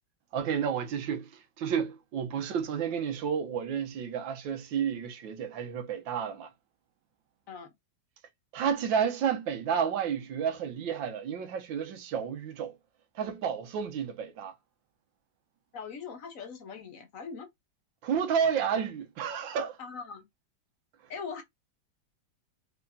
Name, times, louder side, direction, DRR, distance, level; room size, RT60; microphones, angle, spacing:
voice 1, 0.3-6.5 8.5-12.8 13.1-14.5 18.0-19.8, right 7 dB, 90° right, 1.6 m, -31 dB
voice 2, 15.7-17.5 19.8-20.2 21.1-21.4, left 5 dB, 50° left, 1.3 m, -41 dB
4.5 x 4.0 x 2.7 m
omnidirectional pair, 2.0 m